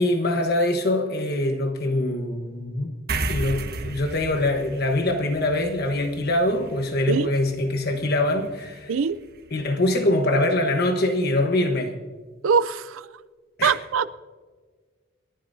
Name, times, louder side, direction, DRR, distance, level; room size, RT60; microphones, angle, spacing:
voice 1, 0.0-2.9 3.3-8.9 9.5-11.9 13.6-13.7, left 1 dB, 50° left, 5 dB, 1.2 m, -23 dB
sound 1, 3.1-9.9, right 2 dB, 50° right, 1.4 m, -35 dB
voice 2, 12.4-13.1 13.6-14.1, right 6 dB, 85° right, 14 dB, 0.5 m, -22 dB
28.5 x 11.5 x 2.7 m, 1.5 s
head